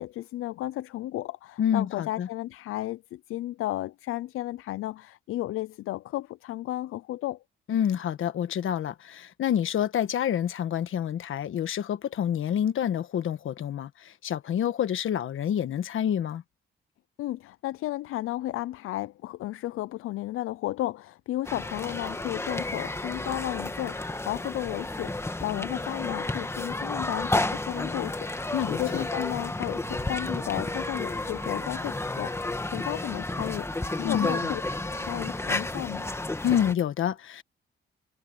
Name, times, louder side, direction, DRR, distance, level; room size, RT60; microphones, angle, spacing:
voice 1, 0.0-7.4 17.2-34.6 35.0-36.1, left 15 dB, 90° left, 0.4 m, -33 dB
voice 2, 1.6-2.3 7.7-16.4 28.5-29.0 34.0-34.5 36.4-37.4, left 9 dB, 75° left, 1.3 m, -28 dB
sound 1, 21.4-36.7, left 2 dB, 10° left, 1.5 m, -32 dB
Bass guitar, 29.8-36.1, right 7 dB, 60° right, 5.8 m, -54 dB
cardioid pair, 100°, 21 cm